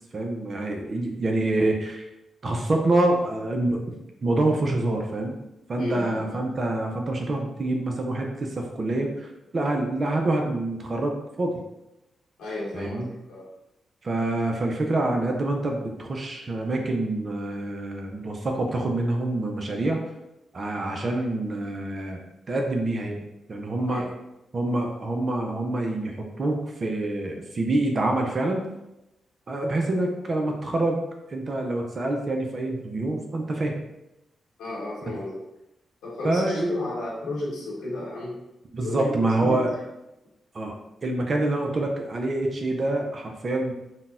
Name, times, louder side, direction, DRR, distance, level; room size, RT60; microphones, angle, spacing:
voice 1, 0.1-2.1 2.4-3.8 4.2-5.4 5.7-11.6 12.7-13.1 14.0-20.0 20.5-22.2 22.5-23.2 23.5-24.1 24.5-28.6 29.5-31.0 31.3-33.7 36.2-36.7 38.7-39.7 40.5-40.8 41.0-43.7, right 2 dB, 50° right, 2 dB, 0.5 m, -26 dB
voice 2, 5.8-6.4 12.4-13.5 23.9-24.1 34.6-35.4 36.0-38.4 38.8-39.8, left 2 dB, 80° left, -6 dB, 0.9 m, -33 dB
3.8 x 2.2 x 2.5 m, 0.92 s
hypercardioid pair, 40°, 0 cm